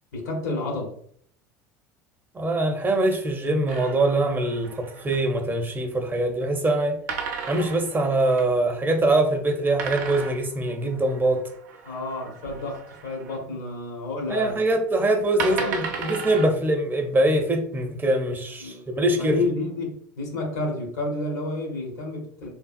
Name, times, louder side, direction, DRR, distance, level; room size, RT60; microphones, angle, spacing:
voice 1, 0.1-1.0 11.8-14.6 15.4-16.1 18.6-22.5, left 2 dB, 75° left, 0.9 m, -30 dB
voice 2, 2.3-7.0 7.5-11.4 14.3-19.4, right 1 dB, 20° right, 0.5 m, -23 dB
sound 1, 3.7-5.4 7.1-8.5 9.8-13.4 14.5-14.6 15.4-16.5, right 5 dB, 75° right, 0.5 m, -35 dB
3.2 x 2.3 x 2.4 m
hypercardioid pair, 75°, 9 cm